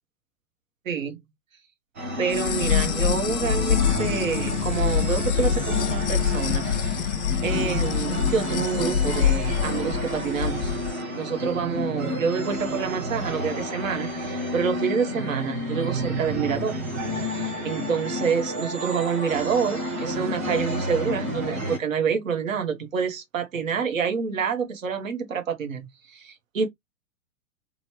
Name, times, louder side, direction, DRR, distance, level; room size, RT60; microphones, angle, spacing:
voice 1, 0.8-1.2 2.2-7.0 7.4-10.7 11.1-16.7 17.2-26.7, right 6 dB, 70° right, 1.1 m, -28 dB
sound 1, 2.0-21.8, equal, 15° right, 0.3 m, -30 dB
sound 2, 2.3-10.9, left 9 dB, 55° left, 0.5 m, -25 dB
3.1 x 2.5 x 3.0 m
figure-of-eight pair, 110°, 41 cm